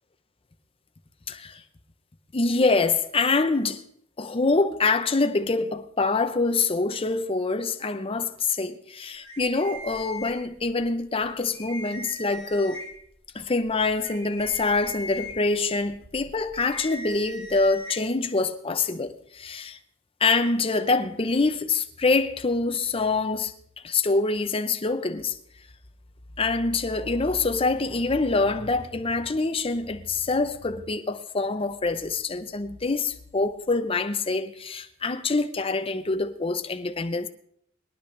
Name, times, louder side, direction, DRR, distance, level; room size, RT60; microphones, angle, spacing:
voice 1, 1.3-1.6 2.3-3.8 4.2-12.8 13.3-19.8 20.2-23.5 23.8-25.4 26.4-37.3, left 3 dB, 30° left, 0.7 m, -25 dB
sound 1, 9.2-10.8 11.2-11.3 11.5-13.1 13.6-18.0, left 1 dB, 35° right, 4.0 m, -40 dB
21.5 x 10.5 x 3.3 m
head